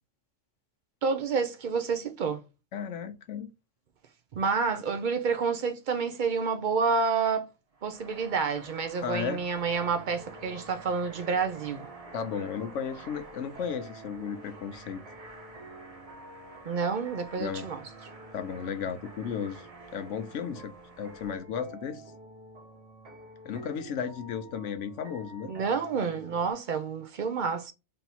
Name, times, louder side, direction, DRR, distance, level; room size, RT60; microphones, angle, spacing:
voice 1, 1.0-2.4 4.3-7.5 7.8-11.9 16.6-17.8 25.5-27.7, right 5 dB, 60° right, 0.5 m, -29 dB
voice 2, 2.7-3.5 9.0-9.4 12.1-15.0 17.4-17.7 18.3-22.0 23.4-25.5, left 7 dB, 70° left, 0.9 m, -34 dB
sound 1, 7.7-21.4, right 2 dB, 30° right, 0.9 m, -50 dB
sound 2, 9.6-26.5, right 1 dB, 85° right, 1.5 m, -49 dB
3.4 x 2.8 x 4.0 m
omnidirectional pair, 1.3 m